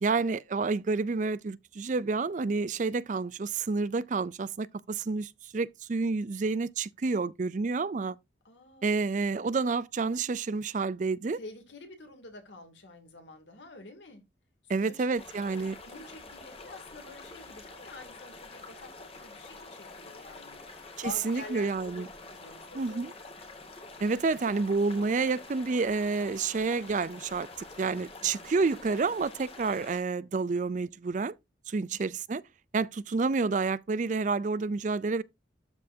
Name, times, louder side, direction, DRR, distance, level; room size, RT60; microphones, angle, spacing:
voice 1, 0.0-8.2 8.8-11.4 14.7-15.7 21.2-22.1 22.7-23.1 24.0-27.5 27.8-31.3 31.7-32.4 32.7-35.2, right 4 dB, 45° right, 0.4 m, -29 dB
voice 2, 8.4-9.2 11.3-14.2 14.8-15.1 15.6-23.1 28.2-28.6 31.7-32.0, left 2 dB, 80° left, 2.7 m, -48 dB
sound 1, 15.2-30.0, left 3 dB, 35° left, 1.9 m, -47 dB
12.5 x 4.5 x 2.7 m
head